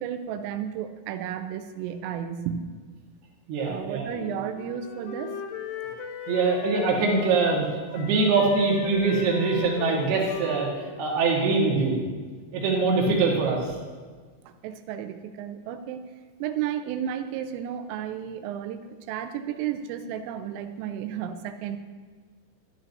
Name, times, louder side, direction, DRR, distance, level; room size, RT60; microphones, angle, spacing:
voice 1, 0.0-2.7 3.6-5.3 14.5-16.1 16.4-21.8, right 9 dB, 85° right, 8 dB, 3.2 m, -33 dB
voice 2, 3.5-4.1 6.3-7.6 7.9-10.7 11.0-11.9 12.5-13.6, right 4 dB, 65° right, -2 dB, 3.0 m, -23 dB
Wind instrument woodwind instrument, 4.1-7.7 7.9-11.8, left 6 dB, 90° left, 2.4 m, -37 dB
12.0 x 11.0 x 2.7 m, 1.5 s
omnidirectional pair, 5.8 m